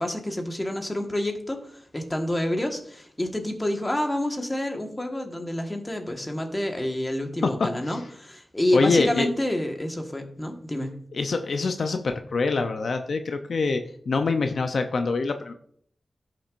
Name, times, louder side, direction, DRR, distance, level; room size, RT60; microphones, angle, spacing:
voice 1, 0.0-10.9, left 1 dB, 15° left, 3 dB, 1.4 m, -28 dB
voice 2, 7.4-8.0 8.7-9.3 11.1-15.5, left 4 dB, 70° left, 6 dB, 0.6 m, -25 dB
14.5 x 6.0 x 2.5 m, 0.62 s
wide cardioid pair, 85°, 0 cm